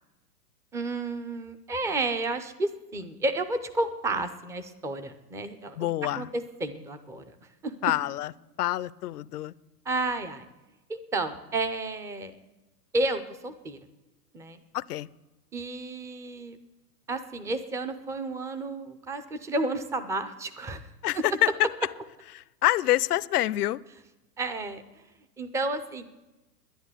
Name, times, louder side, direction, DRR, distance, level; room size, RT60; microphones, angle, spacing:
voice 1, 0.7-5.8 6.2-7.7 9.9-10.5 10.9-12.3 12.9-13.8 14.3-14.6 15.5-16.6 17.1-20.9 21.1-21.2 24.4-24.8 25.4-26.0, right 2 dB, 5° right, 9 dB, 0.4 m, -31 dB
voice 2, 5.8-6.3 7.8-8.3 8.6-9.5 14.7-15.1 21.0-21.5 22.3-23.8, left 15 dB, 70° left, 19 dB, 0.7 m, -26 dB
11.5 x 10.5 x 8.2 m, 1.1 s
hypercardioid pair, 125°, 48 cm